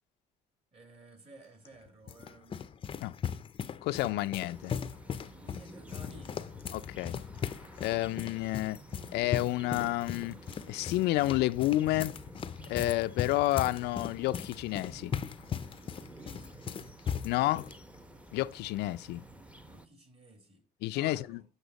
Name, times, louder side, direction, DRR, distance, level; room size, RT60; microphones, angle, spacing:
voice 1, 0.7-2.6 4.3-4.5 5.3-6.5 16.2-16.6 19.6-20.6 20.9-21.4, right 1 dB, 35° right, 2.5 m, -54 dB
sound 1, 1.6-17.8, left 7 dB, 30° left, 0.5 m, -38 dB
voice 2, 3.8-4.7 6.7-7.2 7.8-8.8 9.1-10.4 10.7-12.2 12.7-15.1 17.2-17.7 18.3-19.2 20.8-21.2, left 17 dB, 85° left, 0.5 m, -30 dB
sound 2, 4.5-19.9, right 1 dB, 5° right, 0.8 m, -52 dB
8.1 x 6.0 x 4.0 m
cardioid pair, 110°, 17 cm